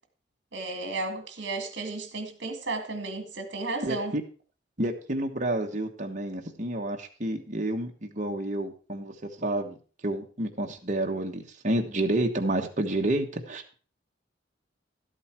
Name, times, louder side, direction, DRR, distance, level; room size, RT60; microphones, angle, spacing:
voice 1, 0.5-4.2, right 3 dB, 65° right, 2.1 m, -33 dB
voice 2, 3.8-4.2 4.8-9.1 9.4-9.7 10.0-13.8, right 1 dB, 40° right, 1.3 m, -29 dB
12.5 x 8.2 x 4.5 m
head